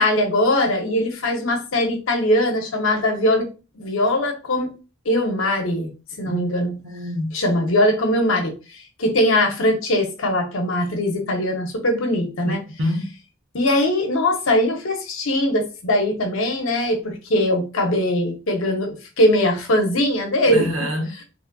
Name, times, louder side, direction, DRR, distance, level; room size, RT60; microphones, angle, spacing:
voice 1, 0.0-3.5 3.7-4.7 5.1-5.9 6.2-6.8 7.3-8.5 9.0-12.6 13.5-20.7, left 1 dB, 80° left, 0.7 m, -21 dB
voice 2, 6.8-7.3 12.4-13.1 20.5-21.1, left 1 dB, 70° right, 0.7 m, -26 dB
3.1 x 2.4 x 2.2 m
head